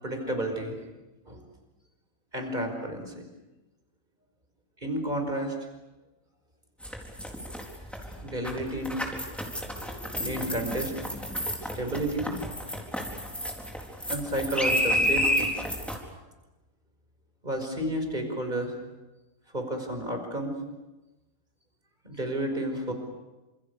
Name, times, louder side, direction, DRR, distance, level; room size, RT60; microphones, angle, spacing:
voice 1, 0.0-0.8 1.3-1.4 2.3-3.2 4.8-5.6 8.2-9.0 9.5-12.3 13.2-13.5 14.0-15.6 17.4-18.7 19.5-20.6 22.0-22.9, right 1 dB, 35° right, 4 dB, 5.6 m, -32 dB
sound 1, 6.8-16.0, equal, ahead, 4.3 m, -30 dB
28.5 x 27.5 x 6.9 m, 1.1 s
omnidirectional pair, 1.4 m